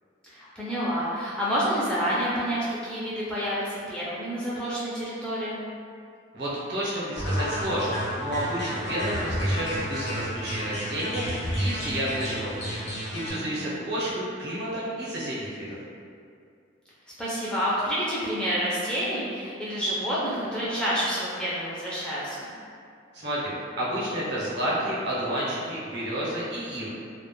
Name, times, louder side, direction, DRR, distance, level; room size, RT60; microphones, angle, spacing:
voice 1, 0.2-5.6 13.3-13.8 17.2-22.5, equal, 5° left, -9 dB, 0.3 m, -29 dB
voice 2, 6.3-15.8 23.1-26.9, right 1 dB, 60° right, -7 dB, 0.6 m, -31 dB
sound 1, 7.1-13.3, equal, 75° left, 0.7 m, -30 dB
2.1 x 2.0 x 2.9 m, 2.3 s
head